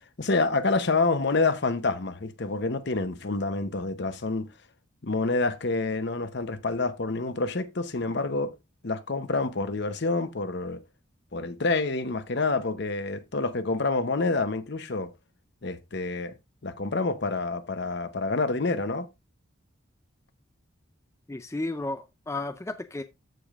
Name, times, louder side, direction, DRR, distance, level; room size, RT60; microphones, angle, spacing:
voice 1, 0.2-4.5 5.0-8.5 8.8-10.8 11.3-15.1 15.6-16.3 16.6-19.1, left 3 dB, 55° left, 0.8 m, -27 dB
voice 2, 21.3-23.0, left 2 dB, 15° left, 0.4 m, -33 dB
13.5 x 5.1 x 2.4 m
head